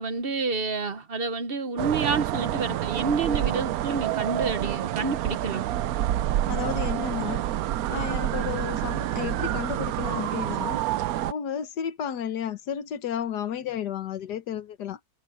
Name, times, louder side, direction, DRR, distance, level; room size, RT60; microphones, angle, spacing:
voice 1, 0.0-5.7, right 4 dB, 40° right, 1.0 m, -29 dB
sound 1, 1.8-11.3, right 13 dB, 70° right, 1.0 m, -28 dB
voice 2, 6.5-7.4 7.9-10.8 11.3-15.0, left 9 dB, 80° left, 1.7 m, -32 dB
omnidirectional pair, 1.7 m